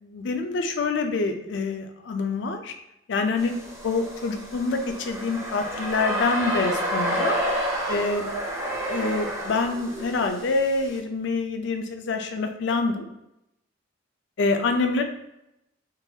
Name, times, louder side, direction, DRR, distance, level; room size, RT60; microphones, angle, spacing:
voice 1, 0.0-2.7 3.1-3.5 3.8-7.4 7.9-8.3 8.9-13.1 14.4-15.0, left 3 dB, 60° left, 5 dB, 0.4 m, -26 dB
sound 1, 3.4-11.0, equal, 15° right, 0.5 m, -30 dB
3.8 x 2.3 x 2.7 m, 0.86 s
head